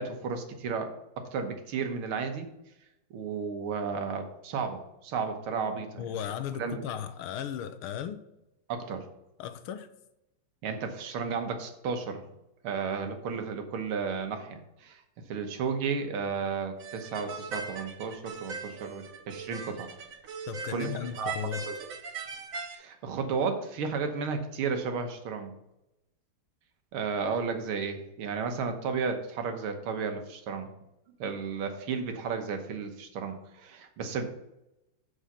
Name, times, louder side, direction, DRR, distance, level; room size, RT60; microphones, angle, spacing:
voice 1, 0.0-2.5 3.1-6.1 6.6-6.8 8.7-9.1 10.6-12.2 12.6-15.0 15.3-19.9 20.7-20.9 21.2-21.3 21.7-21.8 22.7-25.5 26.9-30.7 31.2-34.3, right 5 dB, 85° right, 6 dB, 1.9 m, -33 dB
voice 2, 6.0-8.2 9.4-9.9 20.5-21.6, left 9 dB, 85° left, 11 dB, 1.5 m, -36 dB
sound 1, 16.8-22.8, right 5 dB, 55° right, 1.0 m, -40 dB
6.4 x 6.4 x 5.6 m, 0.89 s
omnidirectional pair, 2.3 m